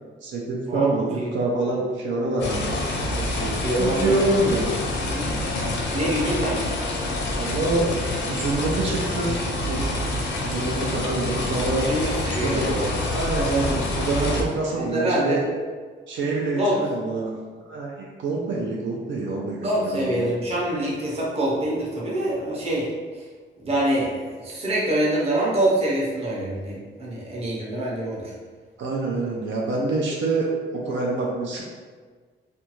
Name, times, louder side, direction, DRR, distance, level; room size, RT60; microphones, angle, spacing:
voice 1, 0.2-2.8 3.8-4.8 6.4-6.5 7.4-7.9 8.3-9.3 9.7-9.9 10.4-11.9 12.3-12.8 13.1-15.4 16.1-17.4 17.6-20.3 28.8-30.5 30.7-31.6, right 2 dB, 80° right, -2 dB, 0.5 m, -26 dB
sound 1, 2.4-14.4, left 2 dB, 70° left, 0.5 m, -27 dB
voice 2, 3.2-4.1 5.1-5.5 5.9-6.6 11.8-13.1 14.7-15.4 16.6-16.8 19.6-22.9 23.1-23.2 23.6-24.1 24.4-28.3, right 1 dB, 30° right, -5 dB, 0.7 m, -25 dB
2.5 x 2.3 x 2.9 m, 1.5 s
cardioid pair, 140°, 19 cm